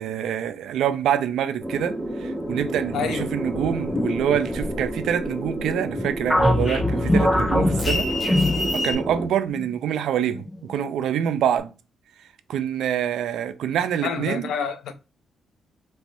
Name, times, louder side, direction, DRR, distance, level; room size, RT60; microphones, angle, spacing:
voice 1, 0.0-8.4 8.7-11.7 12.5-14.5, right 9 dB, 85° right, 0.4 m, -26 dB
sound 1, 1.6-9.3, right 1 dB, 5° right, 1.5 m, -30 dB
voice 2, 2.9-3.3 14.0-14.9, left 6 dB, 80° left, 0.5 m, -28 dB
sound 2, 3.5-5.2 5.6-8.9, left 2 dB, 35° left, 1.5 m, -27 dB
sound 3, 6.3-9.1 9.5-9.7 10.3-10.8, left 1 dB, 15° left, 0.6 m, -23 dB
3.3 x 3.0 x 2.6 m
cardioid pair, 70°, 0 cm